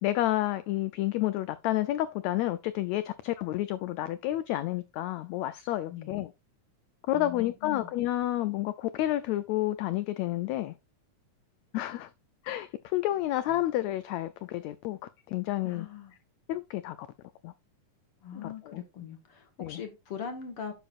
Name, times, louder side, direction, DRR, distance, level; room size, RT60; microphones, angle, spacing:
voice 1, 0.0-6.3 7.1-10.7 11.7-12.1 12.4-15.0 15.3-15.9 16.5-17.0 17.4-17.5 18.3-18.8 19.6-19.8, left 14 dB, 90° left, 1.5 m, -30 dB
voice 2, 5.9-6.3 7.1-7.9 15.6-16.1 18.2-20.7, left 7 dB, 55° left, 1.9 m, -41 dB
10.5 x 7.0 x 2.4 m
omnidirectional pair, 3.7 m